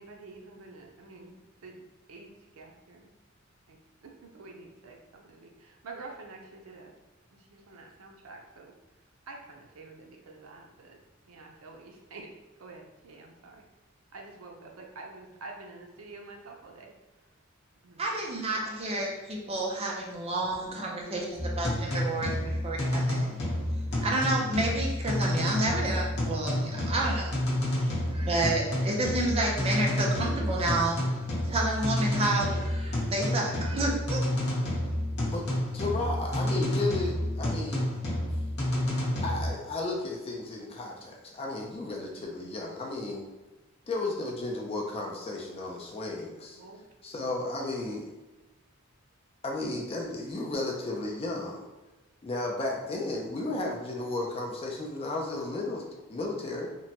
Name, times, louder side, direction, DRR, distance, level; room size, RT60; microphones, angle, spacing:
voice 1, 0.0-3.1 3.7-6.9 7.3-8.7 9.3-11.0 11.3-12.3 12.6-13.6 14.1-16.9 17.8-18.0 18.3-18.4 34.7-35.0 46.5-46.8, right 3 dB, 90° right, 1 dB, 0.5 m, -48 dB
voice 2, 18.0-23.4 24.0-27.4 27.7-31.2 31.4-34.3, right 2 dB, 30° right, -2 dB, 0.5 m, -30 dB
sound 1, 21.4-39.5, left 1 dB, 55° left, 0.8 m, -30 dB
voice 3, 35.7-37.9 39.2-43.3 43.9-46.6 47.0-48.1 49.4-51.7 52.2-55.8 56.1-56.7, left 2 dB, 30° left, -1 dB, 0.4 m, -33 dB
2.9 x 2.1 x 2.8 m, 1.1 s
head